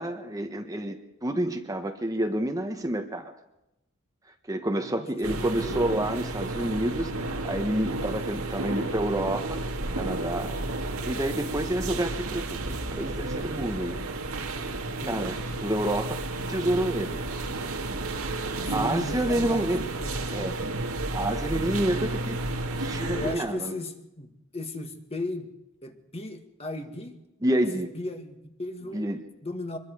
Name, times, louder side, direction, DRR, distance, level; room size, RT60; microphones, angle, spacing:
voice 1, 0.0-3.3 4.5-9.6 10.0-14.0 15.1-15.3 15.6-16.2 16.5-17.2 18.7-19.8 20.3-20.6 21.1-22.4 22.8-23.8 27.4-27.9 28.9-29.2, right 1 dB, 15° right, 5 dB, 1.2 m, -29 dB
voice 2, 4.8-5.8 15.0-15.3 18.7-20.5 21.9-22.0 23.1-25.5 25.8-27.2 27.7-29.8, left 2 dB, 30° left, 5 dB, 1.9 m, -37 dB
sound 1, 5.2-23.4, right 2 dB, 85° right, 2.1 m, -32 dB
24.5 x 22.0 x 4.9 m, 0.90 s
head